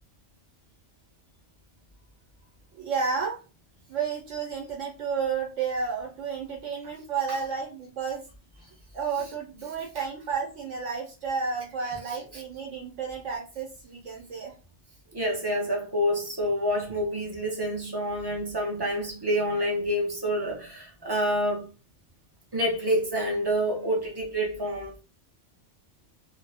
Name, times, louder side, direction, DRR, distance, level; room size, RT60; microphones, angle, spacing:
voice 1, 2.7-3.4 3.9-8.2 8.9-14.5, right 5 dB, 80° right, 1.0 m, -31 dB
voice 2, 11.9-12.4 15.1-21.7 22.5-25.0, equal, 35° right, 0.4 m, -28 dB
2.3 x 2.0 x 3.3 m
omnidirectional pair, 1.3 m